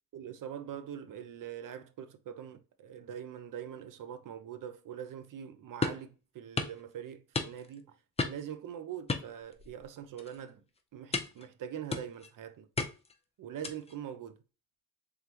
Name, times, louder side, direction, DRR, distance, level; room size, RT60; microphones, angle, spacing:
voice 1, 0.1-7.9 8.2-10.6 10.9-12.7 13.4-14.4, right 9 dB, 70° right, 0.6 m, -43 dB
sound 1, 5.8-6.1 6.6-6.8 7.3-7.8 8.2-8.5 9.1-9.9 10.2-10.4 11.1-11.5 11.9-12.3 12.8-13.2 13.6-14.0, left 4 dB, 20° left, 0.5 m, -34 dB
3.8 x 3.2 x 2.9 m
wide cardioid pair, 130°, 34 cm